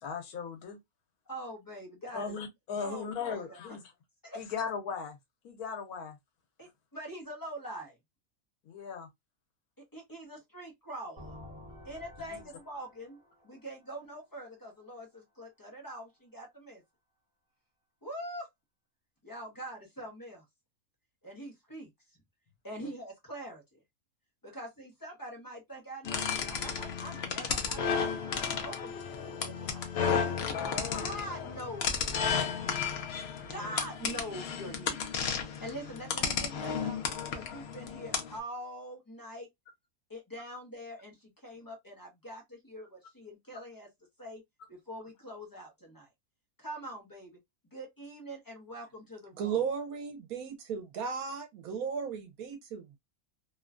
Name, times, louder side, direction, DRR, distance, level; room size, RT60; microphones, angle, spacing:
voice 1, 0.0-0.8 2.1-3.8 4.4-5.2 5.4-6.2 8.6-9.1 22.8-22.9 30.4-31.0 33.5-33.7, left 6 dB, 85° left, 1.3 m, -38 dB
voice 2, 1.3-2.4 2.8-3.6 4.2-4.4 6.6-8.0 9.8-11.4 11.8-13.2 13.4-16.8 18.0-18.5 19.2-20.4 21.2-21.9 22.6-23.8 24.4-29.9 30.7-32.8 33.4-35.3 35.6-37.0 37.3-39.5 40.1-43.9 44.2-44.4 44.7-46.1 46.6-47.4 47.6-49.7, right 1 dB, 20° left, 0.6 m, -44 dB
sound 1, 11.2-14.9, left 1 dB, 20° right, 1.0 m, -51 dB
sound 2, 26.0-38.4, left 6 dB, 60° left, 0.7 m, -33 dB
voice 3, 49.4-53.0, right 7 dB, 80° right, 1.1 m, -35 dB
3.0 x 2.2 x 2.4 m
omnidirectional pair, 1.5 m